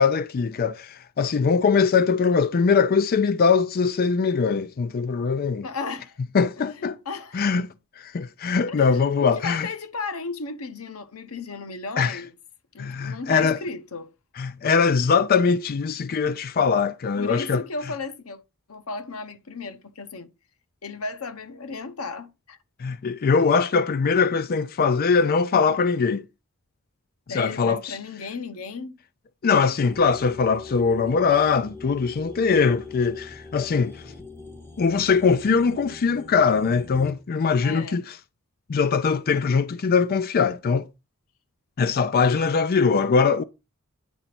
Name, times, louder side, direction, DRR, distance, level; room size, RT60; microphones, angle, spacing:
voice 1, 0.0-5.7 6.3-7.0 7.3-7.7 8.0-9.7 12.0-12.2 12.8-13.6 14.4-17.6 22.8-26.2 27.3-28.0 29.4-34.0 34.8-38.2 38.7-40.9 41.8-43.4, left 5 dB, 45° left, 0.4 m, -21 dB
voice 2, 5.6-6.2 6.6-7.5 8.7-12.3 12.7-14.1 17.1-18.4 18.7-20.3 20.8-22.6 23.2-23.4 27.3-29.0 37.6-38.0, left 4 dB, 90° left, 0.9 m, -35 dB
sound 1, 29.8-37.1, left 3 dB, 10° left, 1.6 m, -41 dB
10.0 x 4.0 x 5.9 m
head